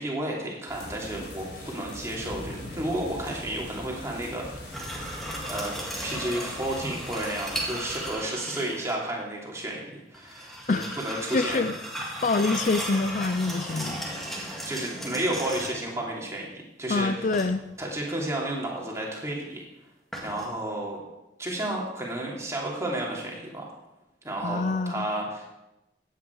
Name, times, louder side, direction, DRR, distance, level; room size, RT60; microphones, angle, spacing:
voice 1, 0.0-4.8 5.5-11.6 13.7-13.8 14.6-17.3 17.8-19.6 20.2-21.0 21.4-23.7 24.2-25.5, right 1 dB, 15° right, -3 dB, 2.9 m, -32 dB
sound 1, 0.7-8.1, left 1 dB, 60° left, 4.4 m, -41 dB
sound 2, 4.7-9.0 10.1-15.9 17.3-17.9 20.1-20.5, right 1 dB, ahead, 2.1 m, -36 dB
voice 2, 10.7-11.7 12.2-14.0 16.9-17.6 24.4-25.1, left 3 dB, 45° left, 11 dB, 0.5 m, -26 dB
15.5 x 9.1 x 4.7 m, 0.93 s
head